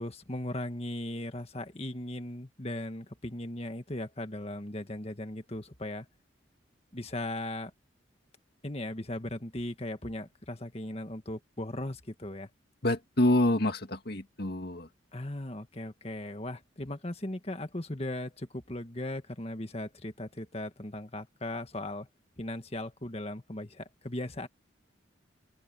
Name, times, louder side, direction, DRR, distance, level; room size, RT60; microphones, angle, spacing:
voice 1, 0.0-6.1 6.9-7.7 8.6-12.5 15.1-22.1 22.4-24.5, left 1 dB, 30° left, 1.8 m, -38 dB
voice 2, 12.8-14.9, left 1 dB, 55° left, 2.2 m, -27 dB
open air
head